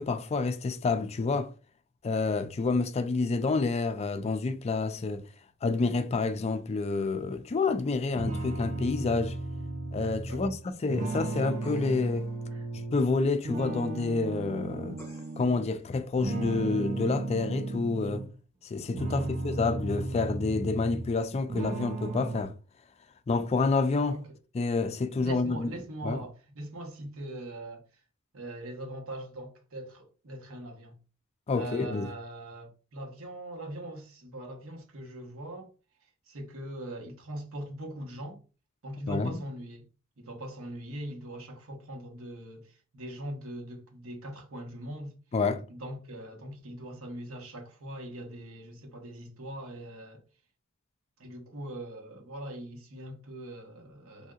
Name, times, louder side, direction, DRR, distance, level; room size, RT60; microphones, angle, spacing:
voice 1, 0.0-1.5 2.0-5.3 5.6-9.4 9.9-10.5 10.8-12.3 12.9-15.0 15.4-18.3 18.6-22.5 23.3-24.2 24.5-25.7 26.0-26.2 31.5-32.1 39.1-39.4 45.3-45.6, left 3 dB, 30° left, 0.3 m, -28 dB
sound 1, 8.2-13.1 13.4-15.7 16.2-18.3 18.8-21.2 21.5-22.4, right 2 dB, 35° right, 0.5 m, -35 dB
voice 2, 10.2-10.6 12.5-12.6 19.0-19.4 24.1-24.4 25.2-27.9 28.3-31.0 31.5-35.7 36.0-38.4 38.8-39.9 40.2-45.2 45.7-50.2 51.2-54.3, right 1 dB, 75° right, 1.0 m, -41 dB
sound 2, 11.6-12.3 15.0-15.6 16.5-16.6, left 2 dB, 15° left, 1.0 m, -48 dB
3.5 x 2.7 x 2.4 m
head